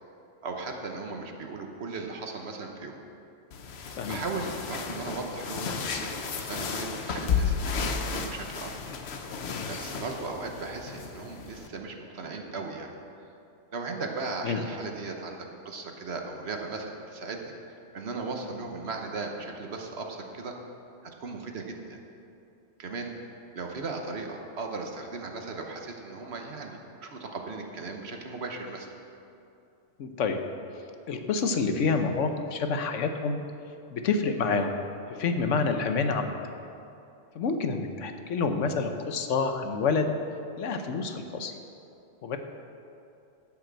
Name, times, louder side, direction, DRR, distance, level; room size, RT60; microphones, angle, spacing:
voice 1, 0.4-3.0 4.1-8.7 9.7-12.9 13.7-20.5 21.2-22.0 22.8-23.1 23.5-28.9, right 3 dB, 60° right, 3 dB, 1.3 m, -37 dB
sound 1, 3.5-11.7, left 5 dB, 60° left, 1.0 m, -33 dB
voice 2, 30.0-30.4 31.1-33.4 33.9-34.7 35.2-36.4 37.3-40.1 40.6-41.5 42.2-42.4, left 4 dB, 80° left, 6 dB, 1.2 m, -28 dB
12.0 x 6.0 x 7.4 m, 2.6 s
omnidirectional pair, 1.2 m